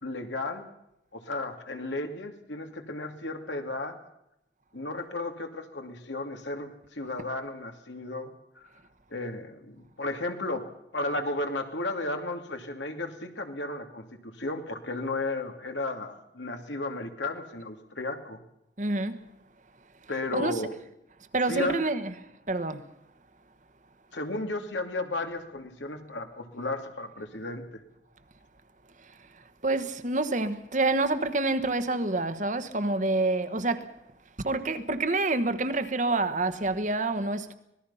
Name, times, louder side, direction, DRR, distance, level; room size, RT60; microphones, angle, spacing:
voice 1, 0.0-0.6 1.1-4.0 4.7-8.3 9.1-10.7 10.9-18.4 20.1-20.7 21.5-21.8 24.1-27.8, left 2 dB, 85° left, 2.7 m, -34 dB
voice 2, 18.8-19.2 20.3-20.6 21.3-22.1 22.5-22.9 29.0-33.9 34.4-37.5, right 2 dB, 45° right, 1.3 m, -28 dB
25.5 x 19.0 x 5.7 m
head